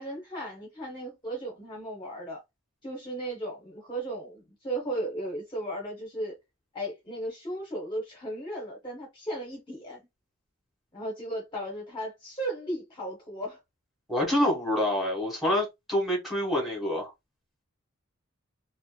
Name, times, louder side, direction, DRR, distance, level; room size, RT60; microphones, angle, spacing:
voice 1, 0.0-2.4 2.8-6.4 6.7-10.0 10.9-13.6, right 1 dB, 25° left, 0.7 m, -35 dB
voice 2, 14.1-17.1, left 1 dB, ahead, 1.2 m, -27 dB
2.9 x 2.1 x 2.2 m
head